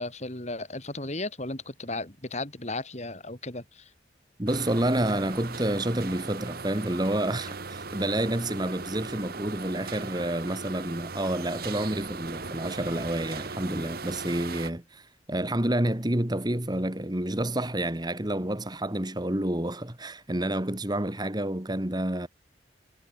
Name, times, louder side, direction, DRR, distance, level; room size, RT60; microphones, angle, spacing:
voice 1, 0.0-3.8, left 2 dB, 35° left, 3.6 m, -35 dB
voice 2, 4.4-22.3, right 1 dB, 20° right, 1.9 m, -29 dB
sound 1, 4.5-14.7, right 4 dB, 55° right, 1.3 m, -38 dB
head